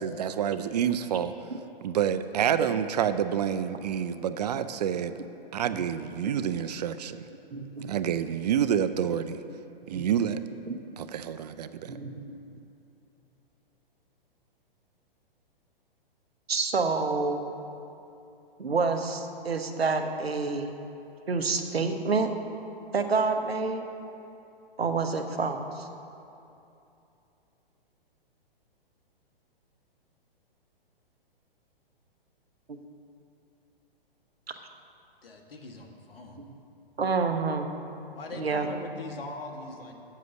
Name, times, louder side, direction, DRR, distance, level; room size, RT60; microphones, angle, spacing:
voice 1, 0.0-1.3 1.8-5.1 5.5-7.3 7.8-9.4 9.9-10.4 11.0-11.9, right 9 dB, 45° right, 12 dB, 0.4 m, -28 dB
voice 2, 7.5-7.9 9.9-10.1 10.7-10.8 11.9-12.2 16.5-17.4 18.6-20.7 21.3-22.3 22.9-23.9 24.8-25.9 32.7-32.8 37.0-37.7 38.4-38.7, right 4 dB, 85° right, 6 dB, 0.9 m, -28 dB
voice 3, 35.2-36.4 38.1-39.9, left 2 dB, 70° left, 2 dB, 1.5 m, -41 dB
7.6 x 7.4 x 6.9 m, 2.8 s
figure-of-eight pair, 125°, 30 cm